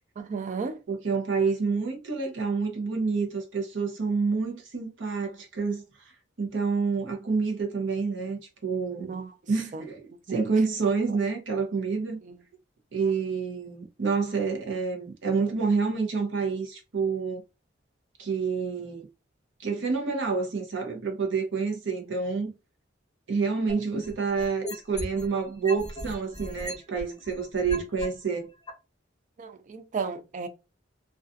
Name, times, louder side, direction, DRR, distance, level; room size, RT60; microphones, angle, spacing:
voice 1, 0.2-0.8 9.0-9.3 9.7-9.8 10.3-10.4 29.4-30.5, right 5 dB, 40° right, 0.4 m, -34 dB
voice 2, 0.9-9.2 9.5-10.0 10.3-12.2 12.9-17.4 18.2-19.1 19.6-22.5 23.3-28.5, right 4 dB, 75° right, 0.7 m, -28 dB
sound 1, 23.7-25.3 25.7-28.1 28.7-28.8, equal, 20° left, 0.7 m, -36 dB
2.4 x 2.3 x 2.5 m
head